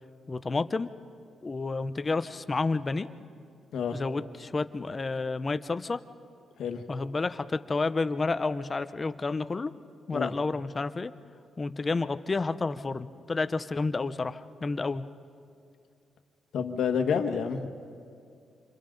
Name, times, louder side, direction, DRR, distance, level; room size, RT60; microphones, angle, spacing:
voice 1, 0.3-0.9 1.4-3.1 3.9-6.0 6.9-9.7 10.1-11.1 11.6-15.0, left 3 dB, 20° left, 12 dB, 0.5 m, -30 dB
voice 2, 16.5-17.9, left 6 dB, 70° left, 6 dB, 1.4 m, -29 dB
28.0 x 27.5 x 3.9 m, 2.4 s
wide cardioid pair, 170°, 0 cm